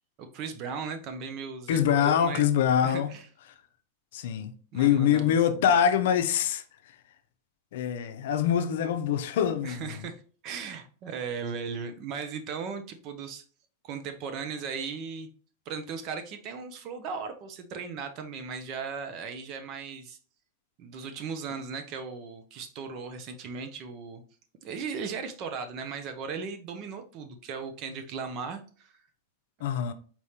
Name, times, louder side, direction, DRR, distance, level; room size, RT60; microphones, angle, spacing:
voice 1, 0.2-2.5 2.8-3.3 4.7-5.6 9.6-13.4 13.8-15.3 15.7-20.2 20.8-24.2 24.6-28.9, right 5 dB, 45° right, 0.7 m, -37 dB
voice 2, 1.7-3.2 4.1-7.0 7.7-10.0 29.6-29.9, left 9 dB, 70° left, 0.6 m, -25 dB
4.4 x 3.5 x 2.8 m
hypercardioid pair, 130°, 0 cm